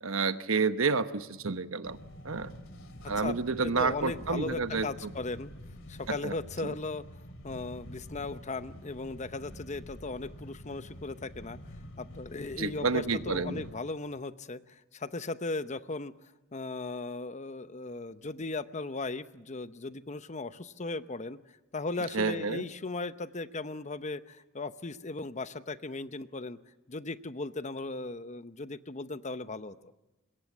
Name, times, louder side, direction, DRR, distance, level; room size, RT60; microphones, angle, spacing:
voice 1, 0.0-2.0 2.2-2.5 3.1-4.9 6.2-6.3 6.6-6.7 12.6-13.6 22.1-22.6, right 4 dB, 85° right, 11 dB, 1.1 m, -29 dB
sound 1, 1.8-13.7, equal, 75° left, 2.9 m, -47 dB
voice 2, 3.6-5.5 5.9-7.0 7.4-11.6 12.0-16.1 16.5-21.4 21.7-26.6 26.9-29.9, left 3 dB, 35° left, 12 dB, 0.8 m, -37 dB
25.5 x 22.0 x 7.3 m, 1.0 s
head